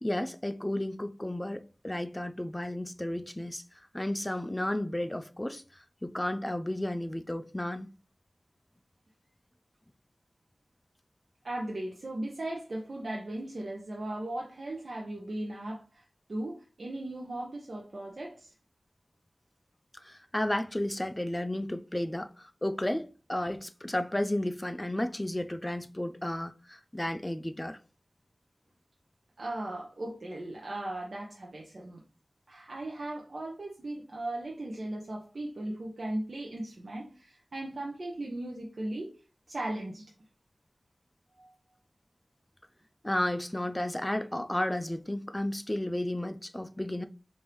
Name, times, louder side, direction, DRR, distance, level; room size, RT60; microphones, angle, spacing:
voice 1, 0.0-3.6 3.9-5.6 6.0-7.9 20.0-27.8 43.0-47.1, left 1 dB, 15° left, 0.4 m, -33 dB
voice 2, 11.4-16.0 16.3-18.5 29.4-32.0 32.5-39.1 39.5-40.1 41.4-41.5, right 1 dB, 70° right, 0.8 m, -37 dB
3.3 x 2.6 x 4.5 m
wide cardioid pair, 55°, 0 cm